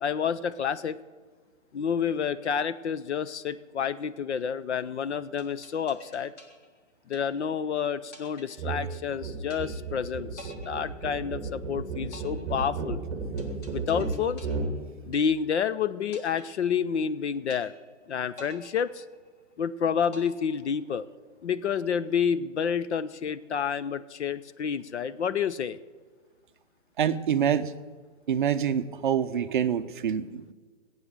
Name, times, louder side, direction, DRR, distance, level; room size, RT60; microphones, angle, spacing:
voice 1, 0.0-1.0 1.7-6.3 7.1-13.0 13.7-14.5 15.1-17.7 18.1-19.0 19.6-21.0 21.4-25.8, left 7 dB, 60° left, 15 dB, 0.6 m, -29 dB
sound 1, 5.4-7.7 8.1-9.1 9.5-10.0 10.4-11.6 12.1-15.7 16.1-17.1 17.5-18.0 18.4-19.6 20.1-21.1, left 1 dB, 30° left, 2.0 m, -50 dB
sound 2, 8.6-8.8 9.1-14.7, right 4 dB, 15° right, 2.2 m, -33 dB
voice 2, 27.0-27.6 28.3-30.5, right 8 dB, 40° right, 10 dB, 0.6 m, -26 dB
15.0 x 8.8 x 8.1 m, 1.4 s
hypercardioid pair, 165°, 38 cm